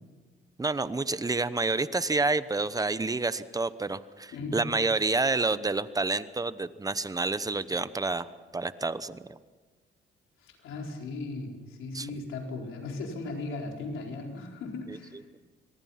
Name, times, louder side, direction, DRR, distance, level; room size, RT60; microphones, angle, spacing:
voice 1, 0.6-8.3 8.5-9.4 11.9-12.1 14.9-15.0, right 3 dB, 20° right, 15 dB, 0.9 m, -29 dB
voice 2, 4.3-4.7 10.4-15.2, left 3 dB, 85° left, 1 dB, 4.4 m, -37 dB
27.0 x 20.5 x 5.8 m, 1.4 s
cardioid pair, 90°, 20 cm